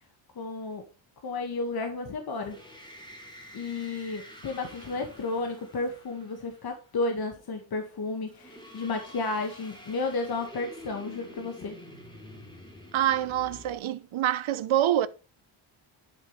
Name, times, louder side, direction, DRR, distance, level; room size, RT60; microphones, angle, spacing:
voice 1, 0.4-0.9 1.2-2.6 3.5-11.8, left 3 dB, 50° left, 1.9 m, -32 dB
sound 1, 2.3-6.8 8.3-13.8, left 1 dB, 10° left, 3.6 m, -48 dB
voice 2, 12.9-15.1, right 12 dB, 75° right, 1.0 m, -26 dB
11.0 x 7.6 x 3.3 m
cardioid pair, 140°, 49 cm